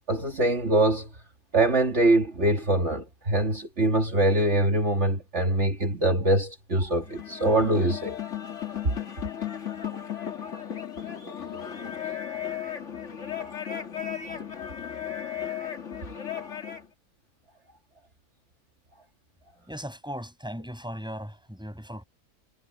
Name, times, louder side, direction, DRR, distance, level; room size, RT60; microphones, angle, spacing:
voice 1, 0.1-1.1 1.5-8.2 10.4-10.5, right 2 dB, 50° right, 2.6 m, -23 dB
sound 1, 7.0-16.9, left 9 dB, 55° left, 2.4 m, -35 dB
voice 2, 19.7-22.0, equal, 5° right, 7.1 m, -37 dB
omnidirectional pair, 1.5 m